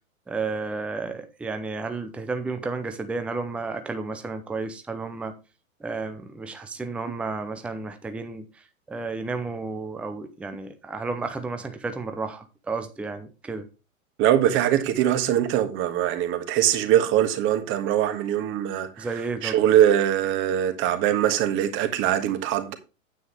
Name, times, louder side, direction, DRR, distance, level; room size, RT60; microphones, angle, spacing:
voice 1, 0.3-5.4 5.8-8.4 8.9-13.7 19.0-19.6, right 3 dB, 5° right, 0.7 m, -32 dB
voice 2, 14.2-19.1 19.4-22.7, right 11 dB, 30° right, 1.6 m, -22 dB
9.2 x 9.2 x 3.3 m
figure-of-eight pair, 105°, 42 cm